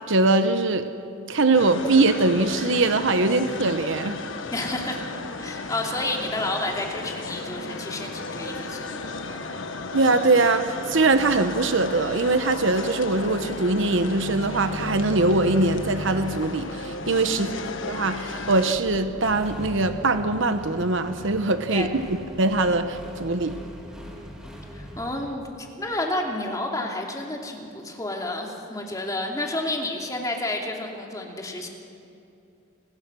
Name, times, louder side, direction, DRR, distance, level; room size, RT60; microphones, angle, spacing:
voice 1, 0.1-0.9 1.3-4.2 9.9-17.5 17.9-23.6, right 3 dB, 65° right, 9 dB, 1.0 m, -22 dB
sound 1, 1.5-18.8, left 3 dB, 65° left, 1.4 m, -35 dB
voice 2, 4.5-5.1 5.4-9.4 17.3-17.7 21.7-21.9 24.7-31.7, left 1 dB, 15° left, 1 dB, 2.8 m, -30 dB
sound 2, 10.9-19.5, equal, 85° right, 2.0 m, -39 dB
Accelerating revving vroom, 19.1-25.3, equal, 5° right, 3.2 m, -41 dB
29.5 x 20.0 x 6.3 m, 2.6 s
head